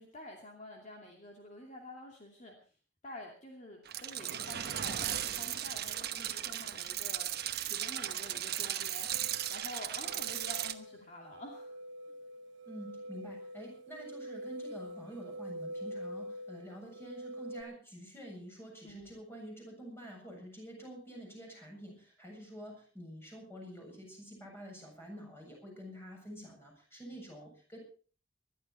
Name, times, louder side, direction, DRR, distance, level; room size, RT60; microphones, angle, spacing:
voice 1, 0.0-2.5 3.0-7.3 7.6-11.8 18.8-19.2, left 1 dB, 40° left, 1 dB, 2.6 m, -49 dB
sound 1, 3.8-10.7, right 11 dB, 55° right, 1.1 m, -36 dB
sound 2, 9.1-17.6, equal, 90° right, 1.2 m, -45 dB
voice 2, 12.6-27.8, equal, 15° left, 0 dB, 7.4 m, -48 dB
20.5 x 12.5 x 4.4 m, 0.40 s
head